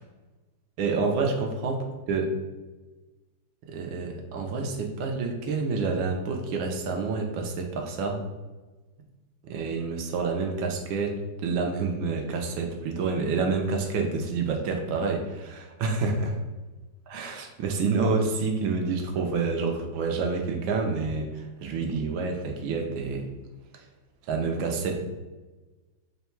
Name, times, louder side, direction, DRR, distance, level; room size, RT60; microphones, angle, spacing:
voice 1, 0.8-2.3 3.7-8.2 9.4-16.3 17.1-23.3 23.7-23.8 24.2-24.9, right 4 dB, 75° right, 2 dB, 1.3 m, -28 dB
3.7 x 2.1 x 4.2 m, 1.2 s
omnidirectional pair, 2.3 m